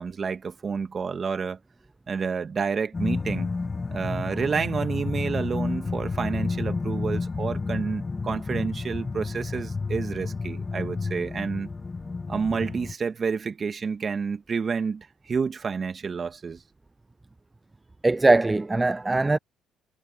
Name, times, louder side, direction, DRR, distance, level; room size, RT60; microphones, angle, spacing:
voice 1, 0.0-1.6 2.1-3.5 3.9-11.7 12.3-16.6, right 5 dB, 40° right, 2.0 m, -29 dB
sound 1, 2.9-12.9, left 4 dB, 25° left, 1.3 m, -30 dB
voice 2, 18.0-19.4, right 2 dB, 20° right, 0.4 m, -21 dB
supercardioid pair, 75°, 0 cm